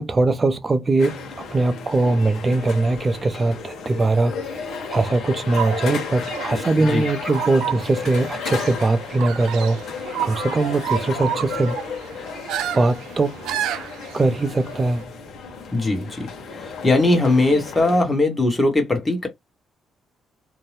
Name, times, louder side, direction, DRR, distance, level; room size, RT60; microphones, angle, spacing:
voice 1, 0.0-9.8 10.2-11.8 12.7-13.3 14.1-15.1, right 2 dB, 30° right, 0.6 m, -21 dB
sound 1, 1.0-18.0, left 5 dB, 70° left, 1.0 m, -33 dB
sound 2, 5.5-15.0, right 11 dB, 90° right, 0.3 m, -31 dB
voice 2, 15.7-16.3 16.8-19.3, left 2 dB, 15° left, 1.2 m, -19 dB
2.7 x 2.2 x 3.3 m
cardioid pair, 90°, 0 cm